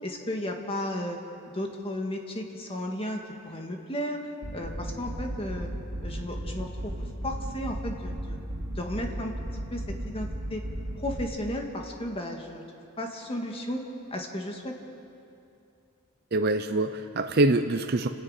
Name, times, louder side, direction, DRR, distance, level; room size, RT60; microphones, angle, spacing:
voice 1, 0.0-1.2 1.5-4.2 4.5-5.7 6.0-8.4 8.7-10.6 11.0-12.6 13.0-13.8 14.1-14.7, left 1 dB, 25° left, 2 dB, 1.9 m, -34 dB
sound 1, 4.4-11.3, right 1 dB, 85° right, 3.3 m, -35 dB
voice 2, 16.3-18.1, right 2 dB, 45° right, 6 dB, 0.7 m, -24 dB
28.5 x 10.5 x 9.0 m, 2.7 s
head